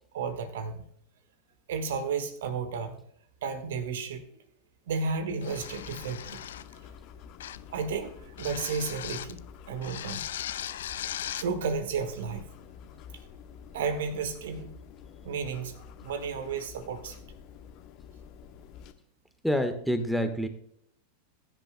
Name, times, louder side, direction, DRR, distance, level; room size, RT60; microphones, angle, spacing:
voice 1, 0.1-0.8 1.7-2.9 3.4-4.3 4.9-6.5 6.7-6.8 7.7-9.4 9.7-10.2 11.4-12.5 13.7-14.7 15.2-17.2, right 5 dB, 60° right, 10 dB, 1.4 m, -33 dB
sound 1, 5.4-6.8 7.4-7.7 8.4-9.4 9.8-11.5, left 11 dB, 60° left, 0.5 m, -38 dB
sound 2, 5.5-18.9, left 7 dB, 40° left, 1.2 m, -49 dB
voice 2, 19.4-20.5, equal, ahead, 10 dB, 1.3 m, -27 dB
21.0 x 10.5 x 2.2 m, 0.70 s
figure-of-eight pair, 90°, 0 cm